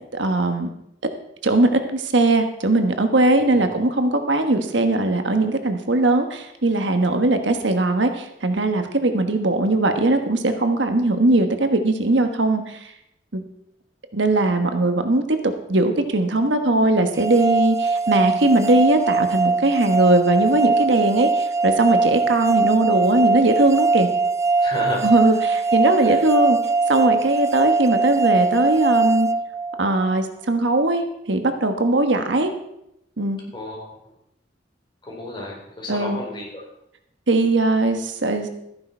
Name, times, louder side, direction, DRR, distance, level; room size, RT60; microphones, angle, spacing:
voice 1, 0.1-0.7 1.4-12.9 13.3-13.4 14.1-24.1 25.0-26.6 26.9-29.3 29.8-32.5 33.2-33.4 35.9-36.2 37.3-38.5, right 2 dB, 75° right, 7 dB, 1.3 m, -20 dB
sound 1, 17.2-30.1, right 3 dB, 15° right, 0.4 m, -21 dB
voice 2, 24.6-25.0 26.0-26.2 33.5-34.0 35.0-36.6, left 1 dB, 25° left, -2 dB, 4.1 m, -32 dB
14.0 x 10.5 x 4.5 m, 0.80 s
head